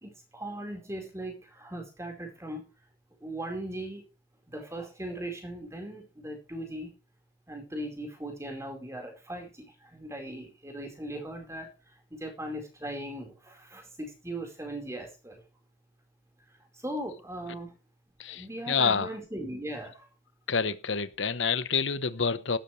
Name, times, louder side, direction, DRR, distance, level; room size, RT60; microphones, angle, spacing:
voice 1, 0.0-2.6 3.2-4.0 4.5-6.9 7.5-11.7 12.1-15.4 16.7-17.7 18.3-20.1, right 1 dB, 15° right, 4.6 m, -39 dB
voice 2, 18.2-19.1 20.5-22.6, left 5 dB, 90° left, 1.1 m, -28 dB
14.5 x 12.5 x 3.3 m
head